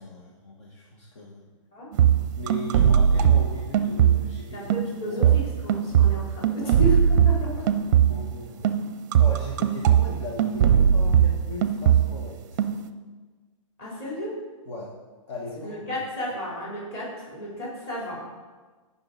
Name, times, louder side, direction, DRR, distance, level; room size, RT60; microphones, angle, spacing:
voice 1, 0.0-1.4 2.4-4.7 5.1-5.4 6.6-6.8 7.4-7.5 8.1-8.7 9.2-12.6 14.6-14.9 15.3-16.0, left 1 dB, 60° left, -3 dB, 1.7 m, -38 dB
sound 1, 1.9-4.4 4.7-8.4 8.6-12.3 12.6-12.9, right 9 dB, 35° right, 0.6 m, -20 dB
voice 2, 4.5-7.4 13.8-14.3 15.6-18.4, equal, 25° left, -5 dB, 3.8 m, -33 dB
16.5 x 5.9 x 4.1 m, 1.3 s
hypercardioid pair, 165°, 17 cm